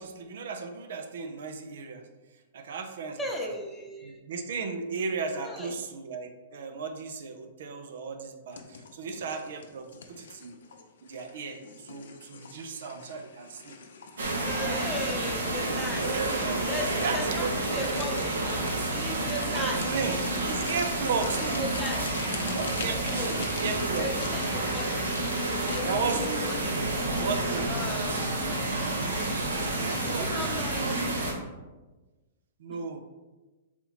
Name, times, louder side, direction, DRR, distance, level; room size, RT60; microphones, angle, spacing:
voice 1, 0.0-2.1 2.5-3.5 4.0-10.6 11.0-13.8 16.1-16.7 17.0-17.8 19.5-20.2 20.5-21.7 22.5-24.2 25.8-26.5 27.2-27.7 29.6-31.4 32.6-33.0, right 5 dB, 70° right, 7 dB, 0.4 m, -35 dB
voice 2, 3.2-4.1 5.4-5.7 14.4-16.1 16.7-17.5 17.7-18.4 18.9-19.8 21.6-22.0 23.0-23.3 24.0-25.0 25.7-26.8 27.7-28.3 30.1-30.9 32.7-32.8, left 1 dB, 10° left, -1 dB, 0.8 m, -36 dB
sound 1, 8.5-26.2, left 6 dB, 75° left, 0.5 m, -46 dB
sound 2, 14.2-31.3, right 2 dB, 85° right, 0.9 m, -29 dB
4.2 x 2.8 x 4.0 m, 1.2 s
hypercardioid pair, 125°, 0 cm